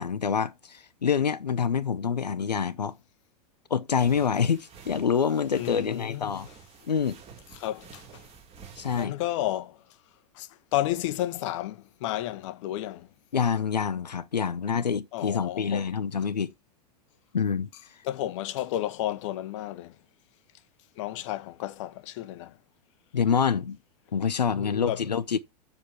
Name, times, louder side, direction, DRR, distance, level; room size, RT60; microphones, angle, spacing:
voice 1, 0.0-3.0 3.7-6.5 6.9-7.2 8.8-9.2 13.3-16.5 17.3-17.7 23.1-23.8 24.1-25.4, left 6 dB, 80° left, 0.6 m, -26 dB
sound 1, 4.0-9.1, right 6 dB, 30° right, 3.1 m, -50 dB
voice 2, 5.6-6.3 7.6-8.0 9.0-9.7 10.4-13.1 15.1-15.8 18.0-19.9 21.0-22.5 24.5-25.0, left 14 dB, 45° left, 0.8 m, -32 dB
6.9 x 6.0 x 7.2 m
figure-of-eight pair, 90°, 21 cm